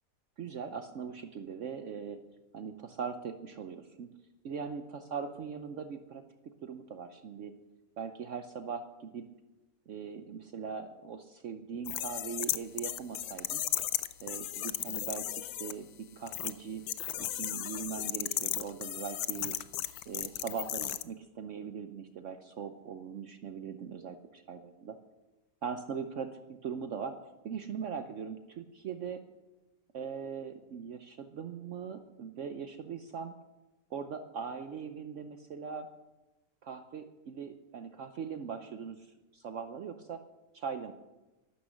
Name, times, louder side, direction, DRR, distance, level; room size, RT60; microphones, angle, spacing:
voice 1, 0.4-2.2 2.5-4.1 4.4-6.2 6.6-7.5 8.0-9.2 9.9-13.6 14.2-15.9 16.2-16.8 17.3-19.5 20.1-25.0 25.6-27.2 27.4-29.2 29.9-33.4 33.9-35.9 36.6-40.2 40.5-40.9, right 6 dB, 60° right, 8 dB, 1.0 m, -40 dB
sound 1, 11.9-15.7 16.3-16.5 16.9-21.0, left 12 dB, 80° left, 1.2 m, -35 dB
13.0 x 12.5 x 6.3 m, 1.1 s
omnidirectional pair, 1.6 m